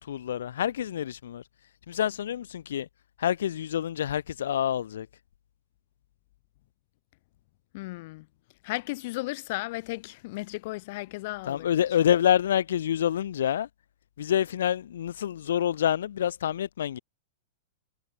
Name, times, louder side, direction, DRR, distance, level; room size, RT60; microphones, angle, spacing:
voice 1, 0.0-1.4 1.9-2.9 3.2-5.1 11.5-13.7 14.2-17.0, left 10 dB, 90° left, 1.3 m, -27 dB
voice 2, 7.7-8.3 8.6-11.7, left 21 dB, 40° left, 2.1 m, -35 dB
supercardioid pair, 175°, 0 cm